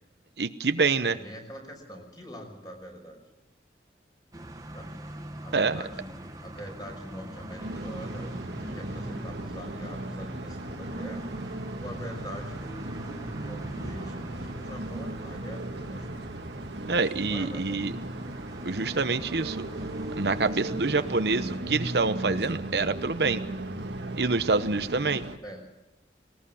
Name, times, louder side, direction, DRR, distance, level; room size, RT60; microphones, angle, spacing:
voice 1, 0.4-1.2 5.5-5.8 16.9-17.9 18.6-19.6 20.2-23.4 24.2-25.2, right 4 dB, 70° right, 10 dB, 1.0 m, -26 dB
voice 2, 1.0-3.2 4.7-4.9 5.4-8.3 8.6-11.3 11.8-16.4 17.3-17.9 25.4-25.6, equal, 25° left, 2 dB, 5.8 m, -43 dB
sound 1, 4.3-21.6, right 1 dB, 20° right, 1.4 m, -42 dB
sound 2, 7.6-25.4, right 2 dB, 90° right, 1.8 m, -37 dB
20.5 x 19.5 x 7.2 m, 1.1 s
head